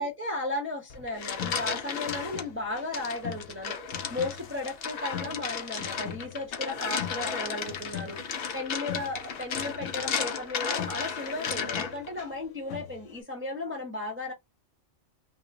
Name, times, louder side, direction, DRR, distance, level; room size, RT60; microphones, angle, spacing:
voice 1, 0.0-3.8 4.1-14.3, left 2 dB, 10° right, 0.7 m, -35 dB
sound 1, 0.9-2.4 2.9-12.1, left 6 dB, 55° left, 0.8 m, -34 dB
sound 2, 1.1-13.2, left 9 dB, 85° left, 1.0 m, -43 dB
3.2 x 2.3 x 4.0 m
omnidirectional pair, 1.3 m